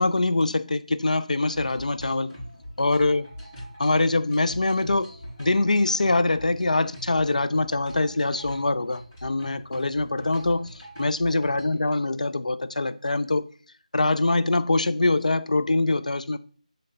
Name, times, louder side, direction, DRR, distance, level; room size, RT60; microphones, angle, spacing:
voice 1, 0.0-2.3 2.8-3.3 3.8-5.1 5.4-13.5 13.9-16.4, left 2 dB, 70° left, 0.5 m, -24 dB
sound 1, 1.4-11.9, equal, 15° left, 2.3 m, -42 dB
7.5 x 3.3 x 3.9 m
figure-of-eight pair, 175°, 4 cm